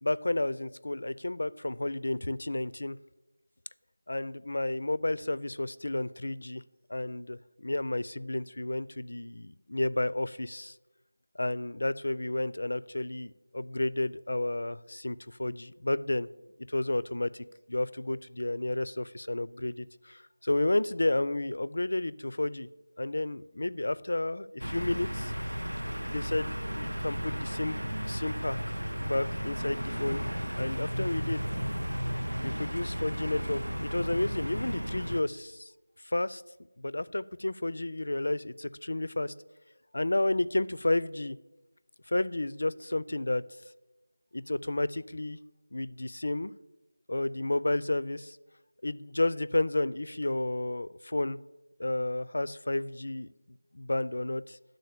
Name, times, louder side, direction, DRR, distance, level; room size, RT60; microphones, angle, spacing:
voice 1, 0.0-3.0 4.1-6.6 6.9-10.8 11.3-16.3 16.7-22.7 23.0-25.3 26.1-27.8 28.0-30.2 30.6-31.5 32.4-35.7 36.0-36.4 36.8-39.3 39.9-41.4 42.1-43.4 44.3-45.4 45.7-46.5 47.1-48.4 48.8-51.4 51.8-53.3 53.7-54.6, left 2 dB, 55° left, 17 dB, 0.3 m, -31 dB
sound 1, 24.6-35.2, equal, 85° right, 0.4 m, -34 dB
11.0 x 3.9 x 6.5 m, 1.1 s
figure-of-eight pair, 170°, 0 cm